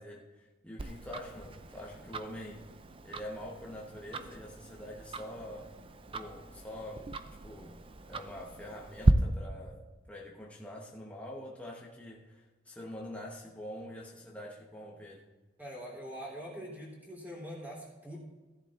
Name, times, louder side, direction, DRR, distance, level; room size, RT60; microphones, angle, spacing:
voice 1, 0.0-2.7 3.0-5.7 6.1-7.1 7.4-7.8 8.1-15.3, left 1 dB, 5° left, -3 dB, 1.0 m, -45 dB
Tick-tock, 0.8-9.1, right 2 dB, 25° right, 0.5 m, -35 dB
voice 2, 15.6-18.2, equal, 10° right, -3 dB, 3.3 m, -43 dB
16.0 x 11.0 x 2.5 m, 1.2 s
head